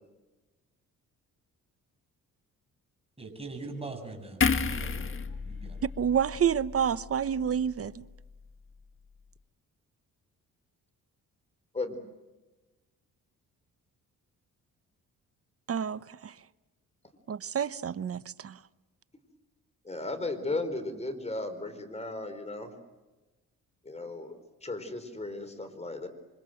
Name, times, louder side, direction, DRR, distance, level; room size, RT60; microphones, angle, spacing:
voice 1, 3.2-5.1 5.4-5.8, right 3 dB, 15° right, 7.4 m, -41 dB
sound 1, 4.4-7.8 8.1-8.3, left 5 dB, 40° left, 1.8 m, -32 dB
voice 2, 6.0-7.9 15.7-16.0 17.3-18.5, right 8 dB, 45° right, 0.9 m, -28 dB
voice 3, 19.8-22.8 23.8-26.1, left 2 dB, 20° left, 4.3 m, -35 dB
27.0 x 24.5 x 7.8 m
cardioid pair, 90°, 33 cm